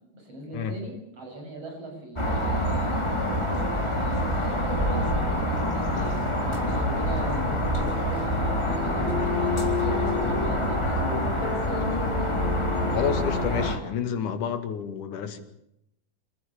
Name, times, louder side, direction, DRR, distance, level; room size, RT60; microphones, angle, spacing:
voice 1, 0.1-2.9 3.4-6.2 6.4-10.0 10.2-11.8, right 2 dB, 45° right, 2 dB, 8.6 m, -40 dB
sound 1, 2.2-13.8, equal, 10° left, 3.6 m, -26 dB
sound 2, 5.9-13.7, left 6 dB, 60° left, 5.7 m, -32 dB
voice 2, 12.9-15.4, left 7 dB, 75° left, 8 dB, 3.5 m, -29 dB
26.5 x 15.0 x 8.8 m, 0.79 s
omnidirectional pair, 3.6 m